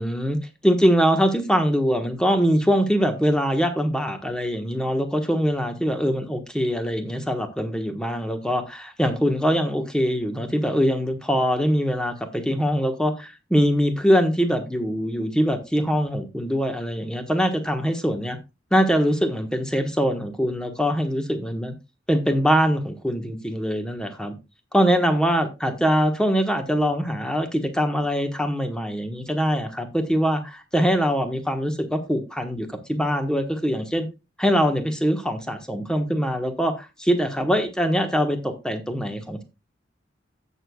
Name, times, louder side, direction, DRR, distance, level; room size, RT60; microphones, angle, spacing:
voice 1, 0.0-18.4 18.7-21.7 22.1-24.3 24.7-34.1 34.4-39.4, equal, 5° left, 1.2 m, -23 dB
16.5 x 6.5 x 2.3 m
head